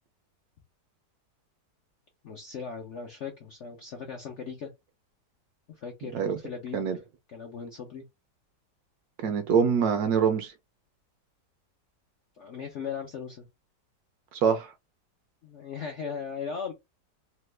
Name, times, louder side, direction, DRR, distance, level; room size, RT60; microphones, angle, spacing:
voice 1, 2.2-4.7 5.7-6.9 7.3-8.0 12.4-13.5 15.4-16.7, left 6 dB, 70° left, 0.7 m, -38 dB
voice 2, 6.0-6.4 6.7-7.0 9.2-10.5 14.3-14.7, right 6 dB, 70° right, 1.0 m, -25 dB
3.1 x 2.1 x 3.2 m
omnidirectional pair, 1.9 m